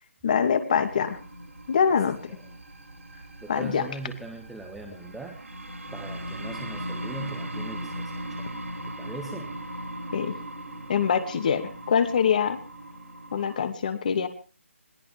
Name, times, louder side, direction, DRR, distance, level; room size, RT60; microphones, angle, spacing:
voice 1, 0.2-1.2 1.7-2.2 3.5-3.9 10.1-10.3 10.9-12.6 13.3-14.3, left 7 dB, 35° left, 8 dB, 2.5 m, -24 dB
sound 1, 0.7-13.6, right 1 dB, 90° right, 7.5 m, -38 dB
voice 2, 3.4-5.4 5.9-8.5 8.8-9.5, right 3 dB, ahead, 0 dB, 1.5 m, -41 dB
21.5 x 18.5 x 3.7 m, 0.36 s
figure-of-eight pair, 165°, 7 cm